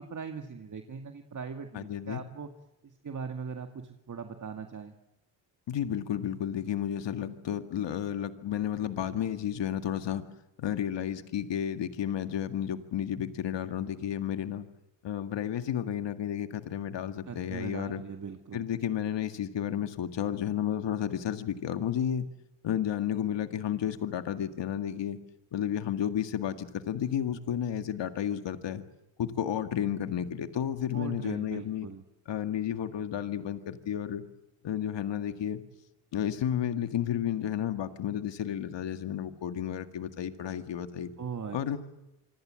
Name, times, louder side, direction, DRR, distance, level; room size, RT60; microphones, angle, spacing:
voice 1, 0.0-2.5 2.8-4.9 17.3-18.7 30.9-32.0 41.2-41.8, right 6 dB, 40° right, 5 dB, 2.1 m, -40 dB
voice 2, 1.7-2.2 5.7-10.3 10.6-14.7 15.0-18.0 18.5-22.3 22.6-25.2 25.5-28.8 29.2-31.9 32.3-34.2 34.6-35.6 36.1-41.1 41.5-41.8, left 10 dB, 70° left, 9 dB, 2.0 m, -32 dB
26.5 x 25.0 x 7.6 m, 0.93 s
cardioid pair, 110°, 44 cm